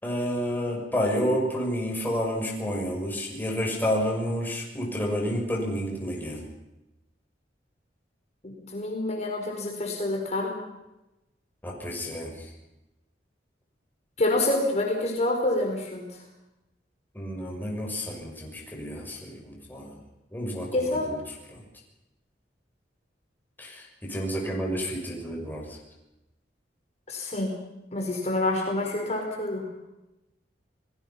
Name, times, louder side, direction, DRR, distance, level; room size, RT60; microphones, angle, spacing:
voice 1, 0.0-6.4 11.6-12.5 17.1-20.0 20.3-21.2 21.5-21.6 23.6-25.6, equal, 10° left, -1 dB, 6.2 m, -30 dB
voice 2, 8.4-10.6 14.2-16.2 20.7-21.1 27.1-27.5 27.9-29.7, left 2 dB, 40° left, 1 dB, 4.8 m, -27 dB
30.0 x 20.0 x 5.8 m, 0.94 s
head